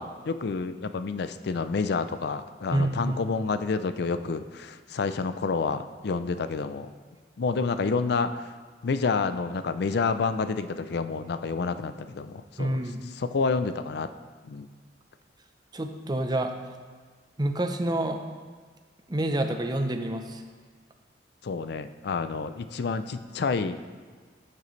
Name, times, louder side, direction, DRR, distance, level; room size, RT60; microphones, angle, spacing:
voice 1, 0.0-6.9 7.4-8.4 8.8-12.8 13.1-14.1 14.4-14.7 21.4-23.8, left 4 dB, 60° left, 11 dB, 0.4 m, -29 dB
voice 2, 2.7-3.2 12.6-13.0 15.7-16.5 17.4-18.2 19.1-20.4, right 1 dB, 20° right, 5 dB, 0.6 m, -27 dB
12.0 x 6.6 x 3.2 m, 1.5 s
head